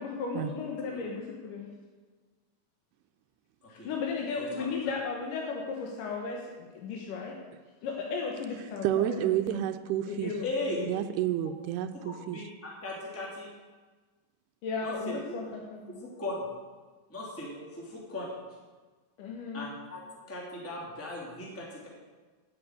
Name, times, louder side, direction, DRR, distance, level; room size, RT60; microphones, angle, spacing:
voice 1, 0.0-1.7 3.7-7.3 7.8-9.7 10.1-10.9 14.6-16.0 19.2-19.7, left 4 dB, 65° left, -1 dB, 2.7 m, -35 dB
voice 2, 8.8-10.3 10.9-12.4, right 12 dB, 85° right, 9 dB, 2.7 m, -30 dB
voice 3, 10.4-10.8 12.0-13.5 14.8-15.2 16.0-16.4 17.1-18.3 19.5-20.0 20.3-21.9, left 2 dB, 5° left, -3 dB, 2.2 m, -38 dB
9.7 x 9.5 x 9.3 m, 1.3 s
omnidirectional pair, 4.6 m